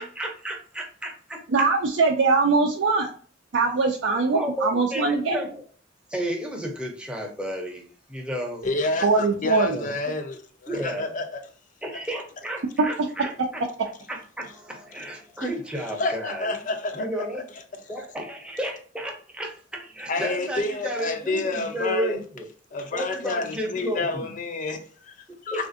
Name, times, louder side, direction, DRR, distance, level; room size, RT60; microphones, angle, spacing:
voice 1, 0.0-1.4 4.3-5.6 6.1-8.7 9.7-9.9 10.7-11.3 11.8-13.6 14.1-16.5 16.9-17.4 17.9-22.4 22.9-24.3 25.3-25.7, equal, 5° right, 0.6 m, -32 dB
voice 2, 1.5-3.1 3.5-5.3 9.0-9.7 12.8-12.9, right 4 dB, 75° right, 0.4 m, -21 dB
voice 3, 8.6-11.4 15.4-15.5 16.0-17.1 20.1-22.2 22.7-25.1 25.4-25.7, left 3 dB, 45° left, 0.5 m, -29 dB
3.5 x 2.5 x 2.5 m
head